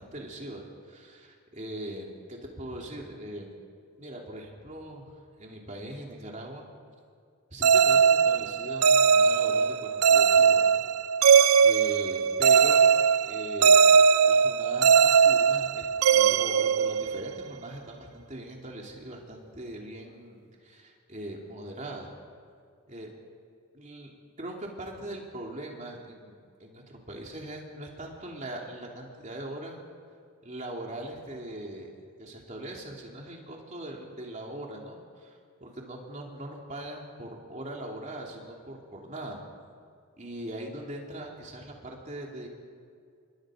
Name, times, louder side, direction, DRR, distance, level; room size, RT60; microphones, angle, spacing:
voice 1, 0.0-3.6 4.0-5.1 5.4-6.7 7.5-10.7 11.6-12.9 13.2-14.0 14.3-15.8 16.1-22.1 22.9-23.1 23.7-24.1 24.4-29.8 30.4-39.4 40.2-42.5, right 1 dB, 35° right, 0 dB, 3.1 m, -41 dB
sound 1, 7.6-17.4, right 6 dB, 80° right, 0.6 m, -20 dB
27.5 x 23.5 x 5.1 m, 2.2 s
head